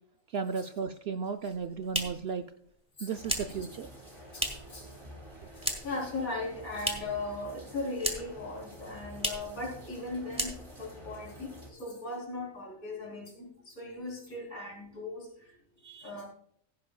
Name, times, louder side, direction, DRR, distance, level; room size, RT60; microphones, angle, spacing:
voice 1, 0.3-2.4 3.0-3.9 15.8-16.1, right 5 dB, 65° right, 8 dB, 0.6 m, -35 dB
sound 1, 1.4-4.8 5.1-6.1 6.3-7.3 7.5-8.5 8.7-8.8 9.1-9.6 9.9-10.0 10.3-10.9, equal, 5° right, 1.4 m, -35 dB
sound 2, 3.1-11.7, right 1 dB, 20° right, 2.6 m, -49 dB
voice 2, 4.3-4.8 5.5-15.3 16.0-16.3, left 2 dB, 75° left, -1 dB, 4.4 m, -38 dB
16.5 x 9.9 x 2.3 m, 0.65 s
omnidirectional pair, 1.5 m